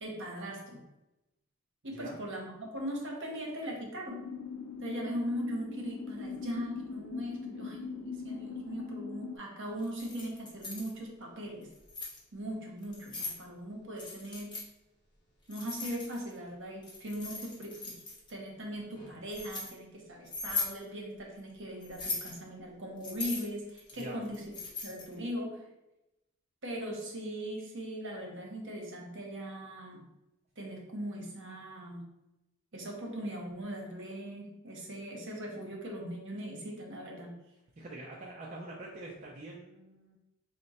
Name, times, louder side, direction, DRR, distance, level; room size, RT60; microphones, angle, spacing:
voice 1, 0.0-0.8 1.8-4.2 4.8-11.7 12.3-14.6 15.5-18.0 18.3-24.4 24.8-25.6 26.6-30.0 30.6-32.0 32.7-37.3, equal, 60° right, -1 dB, 0.9 m, -39 dB
sound 1, 4.1-9.4, left 4 dB, 70° left, 0.4 m, -41 dB
Keys jangling, 9.8-10.9 11.6-12.2 12.8-13.4 14.0-14.7 15.5-16.4 16.8-18.3 18.9-19.7 20.3-20.8 21.8-22.4 23.0-25.1, left 3 dB, 20° left, 0.8 m, -39 dB
voice 2, 37.8-40.2, right 2 dB, 35° right, -3 dB, 0.4 m, -45 dB
3.7 x 2.1 x 4.1 m, 0.94 s
head